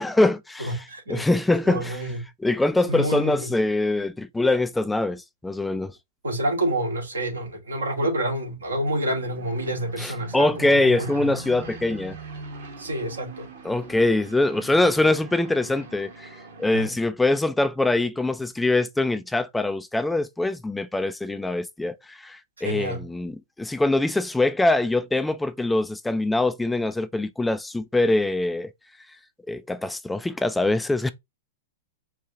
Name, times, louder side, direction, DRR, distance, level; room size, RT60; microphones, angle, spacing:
voice 1, 0.0-0.7 1.1-2.0 2.4-5.9 10.0-12.2 13.6-16.3 16.6-28.7 29.5-31.1, left 2 dB, 5° left, 0.3 m, -23 dB
voice 2, 0.6-1.3 1.6-2.2 2.9-3.5 6.2-11.4 12.8-13.5 16.7-16.9 22.6-23.0, right 1 dB, 90° right, 1.9 m, -28 dB
sound 1, 8.7-16.9, right 4 dB, 60° right, 1.4 m, -42 dB
4.5 x 2.3 x 2.7 m
hypercardioid pair, 115°, 0 cm